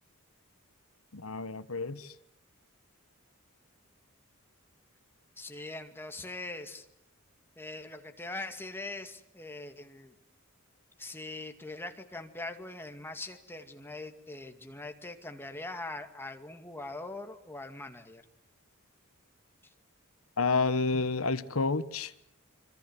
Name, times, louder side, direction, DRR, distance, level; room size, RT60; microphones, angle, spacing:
voice 1, 1.1-2.1 20.4-22.3, left 4 dB, 70° left, 1.3 m, -30 dB
voice 2, 5.4-6.9 7.6-10.1 11.0-18.2, left 2 dB, 10° left, 2.2 m, -42 dB
26.0 x 25.5 x 8.0 m
head